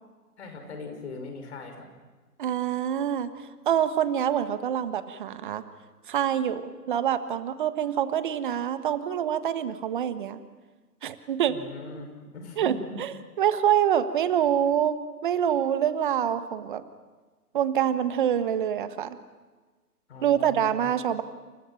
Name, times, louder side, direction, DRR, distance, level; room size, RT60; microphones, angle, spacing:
voice 1, 0.4-1.9 11.5-12.1 12.3-13.0 20.1-20.9, left 3 dB, 45° left, 5 dB, 6.0 m, -40 dB
voice 2, 2.4-5.6 6.1-10.4 11.0-11.6 12.6-16.8 17.5-19.2 20.2-21.2, right 9 dB, 30° right, 12 dB, 1.4 m, -26 dB
29.0 x 29.0 x 6.0 m, 1.3 s
figure-of-eight pair, 130°, 47 cm